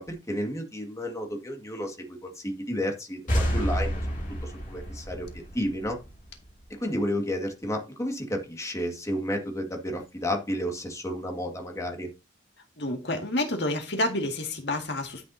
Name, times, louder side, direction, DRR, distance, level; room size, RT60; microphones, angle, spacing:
voice 1, 0.0-4.1 4.4-6.0 6.7-12.1, equal, 15° left, 1.8 m, -32 dB
sound 1, 3.3-6.8, equal, 45° left, 3.0 m, -30 dB
voice 2, 12.8-15.3, left 1 dB, 60° left, 2.0 m, -29 dB
12.0 x 7.3 x 2.7 m
head